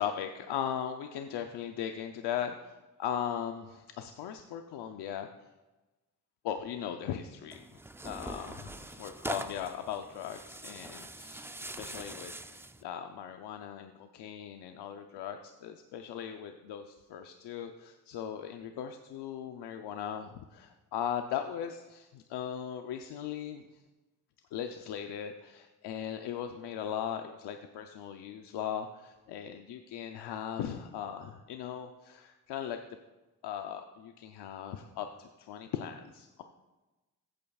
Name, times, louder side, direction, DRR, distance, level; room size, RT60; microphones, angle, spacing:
voice 1, 0.0-5.5 6.4-23.8 24.5-32.8 33.4-36.4, left 9 dB, 85° left, 6 dB, 0.6 m, -38 dB
Tearing, 7.5-12.8, right 2 dB, 5° right, 0.4 m, -43 dB
15.0 x 8.7 x 2.4 m, 1.1 s
cardioid pair, 75°, 39 cm